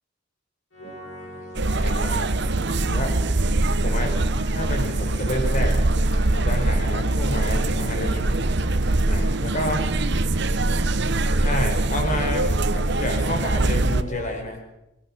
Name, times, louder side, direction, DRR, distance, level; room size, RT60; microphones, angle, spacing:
sound 1, 0.7-14.4, right 1 dB, 85° left, 7.2 m, -40 dB
sound 2, 1.5-14.0, right 2 dB, 60° right, 1.1 m, -22 dB
voice 1, 1.6-2.3 2.8-3.1 3.8-4.1 4.5-5.8 6.3-8.4 9.1-9.8 11.4-14.6, left 1 dB, 40° left, 3 dB, 4.7 m, -29 dB
27.0 x 17.0 x 6.2 m, 0.88 s
head